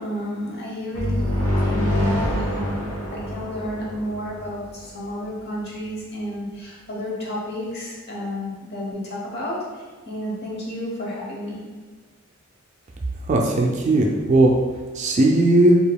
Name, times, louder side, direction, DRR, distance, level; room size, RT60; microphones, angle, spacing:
voice 1, 0.0-11.6, equal, 50° left, -4 dB, 0.9 m, -31 dB
sound 1, 0.9-4.7, left 1 dB, 75° left, 1.0 m, -25 dB
voice 2, 13.2-14.6 14.9-15.8, right 2 dB, 35° right, 0 dB, 0.4 m, -17 dB
4.7 x 2.8 x 2.2 m, 1.4 s
head